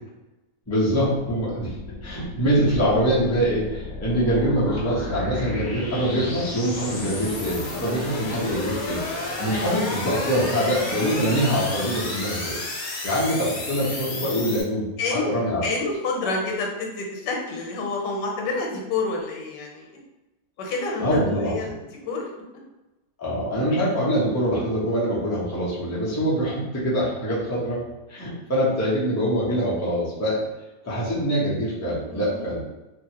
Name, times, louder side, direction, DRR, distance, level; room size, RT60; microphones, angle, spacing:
voice 1, 0.7-1.8 2.0-9.0 9.4-12.5 13.0-15.6 16.2-16.3 21.0-21.7 23.2-27.8 28.1-30.4 30.8-32.6, equal, 20° left, -7 dB, 0.4 m, -24 dB
sound 1, 1.1-14.6, left 2 dB, 65° left, 1.1 m, -33 dB
voice 2, 8.0-8.6 9.6-9.9 15.0-15.3 15.6-19.9 20.6-22.3 32.1-32.5, left 3 dB, 90° left, 0 dB, 1.3 m, -29 dB
2.8 x 2.7 x 2.8 m, 1.0 s
omnidirectional pair, 1.8 m